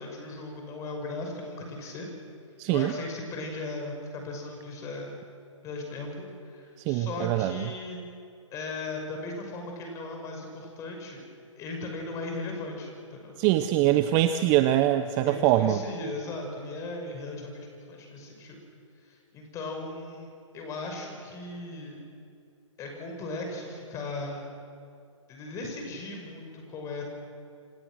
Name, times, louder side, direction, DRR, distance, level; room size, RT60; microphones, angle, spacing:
voice 1, 0.0-2.1 2.7-5.2 5.6-8.0 8.5-11.2 11.6-13.4 15.2-18.6 19.1-22.0 22.8-24.5 25.3-27.0, left 2 dB, 20° left, 2 dB, 5.8 m, -37 dB
voice 2, 2.6-2.9 6.9-7.7 13.4-15.8, right 13 dB, 20° right, 10 dB, 0.7 m, -23 dB
29.0 x 25.0 x 6.3 m, 2.5 s
figure-of-eight pair, 135°, 17 cm